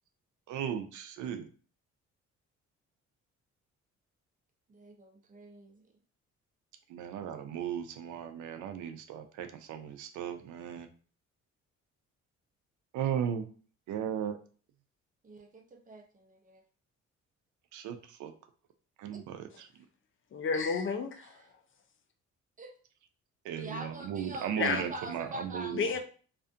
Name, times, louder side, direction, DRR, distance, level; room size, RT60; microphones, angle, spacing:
voice 1, 0.5-1.4 6.9-10.9 12.9-13.4 13.9-14.3 17.7-18.3 19.0-19.4 23.4-25.9, right 9 dB, 75° right, 7 dB, 0.4 m, -36 dB
voice 2, 4.7-5.8 15.2-16.6 22.6-22.7 23.6-26.0, right 1 dB, 25° right, 3 dB, 0.7 m, -44 dB
voice 3, 20.3-21.4 24.6-24.8 25.7-26.0, left 5 dB, 45° left, 7 dB, 0.4 m, -31 dB
2.5 x 2.4 x 2.5 m, 0.41 s
cardioid pair, 90°, 30 cm